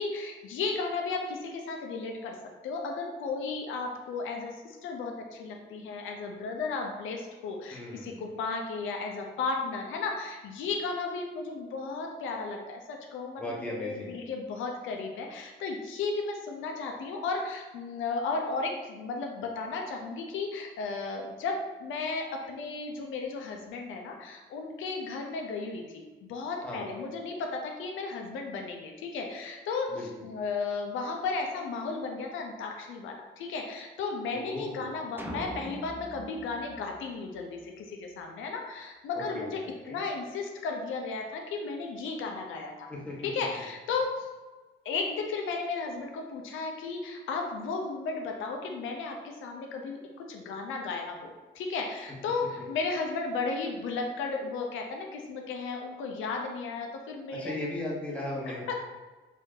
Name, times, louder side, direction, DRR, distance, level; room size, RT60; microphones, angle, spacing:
voice 1, 0.0-2.4 2.6-26.0 26.3-30.0 30.2-39.6 39.9-42.9 43.2-44.3 44.8-57.5 58.7-58.8, left 4 dB, 80° left, 2 dB, 0.5 m, -34 dB
voice 2, 7.7-8.3 13.4-14.2 26.6-26.9 29.9-30.1 34.3-34.9 39.1-40.0 42.9-43.2 57.3-58.7, left 1 dB, 5° left, -4 dB, 1.0 m, -37 dB
sound 1, 35.2-37.6, right 1 dB, 10° right, 0.4 m, -42 dB
3.3 x 2.7 x 3.7 m, 1.3 s
cardioid pair, 90°, 20 cm